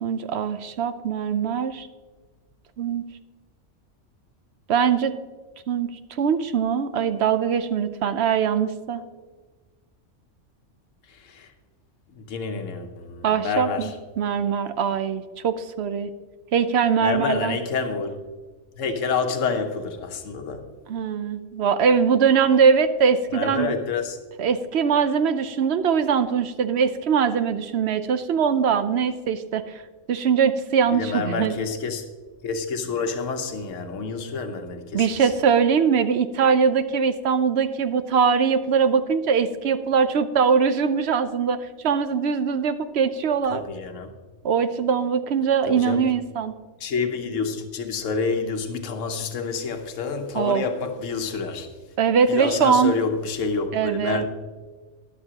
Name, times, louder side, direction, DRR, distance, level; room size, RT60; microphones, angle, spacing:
voice 1, 0.0-1.9 2.8-3.0 4.7-5.1 5.7-5.9 6.2-9.0 13.2-13.9 14.2-16.1 16.5-17.6 20.9-23.7 24.4-29.6 30.1-31.6 34.9-41.6 41.8-43.6 44.4-46.5 50.4-50.6 52.0-52.9 53.7-54.2, right 6 dB, 65° right, 0.8 m, -22 dB
voice 2, 11.1-11.5 12.1-14.0 17.0-18.2 18.8-20.7 23.3-24.2 30.9-32.1 32.4-35.3 43.5-44.1 45.7-46.1 46.8-51.7 52.3-54.3, left 4 dB, 80° left, 1.3 m, -28 dB
12.5 x 11.0 x 2.9 m
omnidirectional pair, 1.3 m